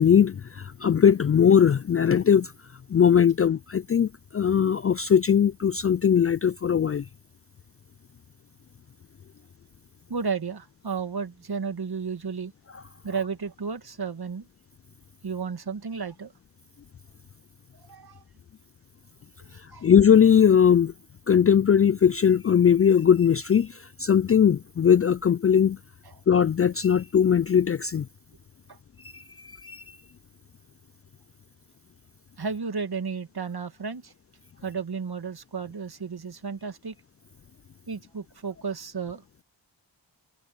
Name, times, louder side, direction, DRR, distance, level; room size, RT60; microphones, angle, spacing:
voice 1, 0.0-2.5 2.9-7.0 19.8-20.9 21.3-25.8 26.3-28.1 29.1-29.2 29.6-29.8, left 8 dB, 35° left, 0.4 m, -20 dB
voice 2, 10.1-12.5 13.0-14.5 15.2-16.3 17.7-18.2 19.5-19.9 26.1-26.2 28.7-28.8 32.4-34.1 34.6-36.9 37.9-39.2, right 5 dB, 55° right, 2.2 m, -33 dB
cardioid pair, 45°, 46 cm